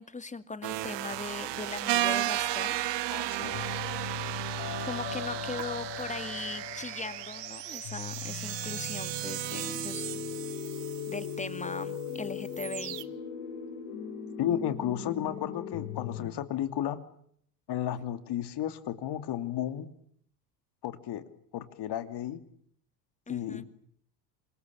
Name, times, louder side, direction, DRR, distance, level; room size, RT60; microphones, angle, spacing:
voice 1, 0.0-2.8 4.8-10.1 11.1-13.0 23.3-23.6, left 3 dB, 15° left, 12 dB, 2.3 m, -39 dB
sound 1, 0.6-11.4 11.8-12.1 12.5-13.0, right 14 dB, 55° right, 1.6 m, -34 dB
voice 2, 3.1-3.6 14.4-17.0 17.7-19.9 20.8-21.2 21.5-22.4 23.3-23.6, left 11 dB, 55° left, 11 dB, 2.9 m, -33 dB
sound 2, 3.4-16.3, left 7 dB, 85° left, 7.0 m, -39 dB
27.5 x 21.5 x 8.6 m, 0.67 s
supercardioid pair, 80°, 49 cm